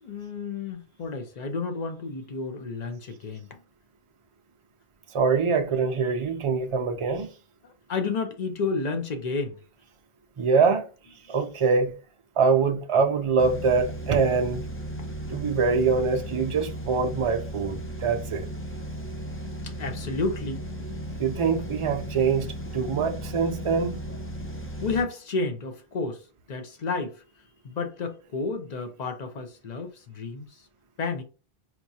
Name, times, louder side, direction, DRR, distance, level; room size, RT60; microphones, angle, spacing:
voice 1, 0.0-3.6 7.9-9.6 15.0-15.1 19.6-20.7 24.8-26.2 26.5-27.2 27.6-30.5 31.0-31.2, left 4 dB, 50° left, 0.7 m, -31 dB
voice 2, 5.1-7.3 10.4-10.9 11.3-11.9 12.4-14.7 15.3-18.5 21.2-24.0, right 5 dB, 45° right, 0.4 m, -24 dB
sound 1, 13.4-25.0, right 1 dB, 20° left, 0.3 m, -36 dB
4.4 x 2.4 x 2.7 m
omnidirectional pair, 1.0 m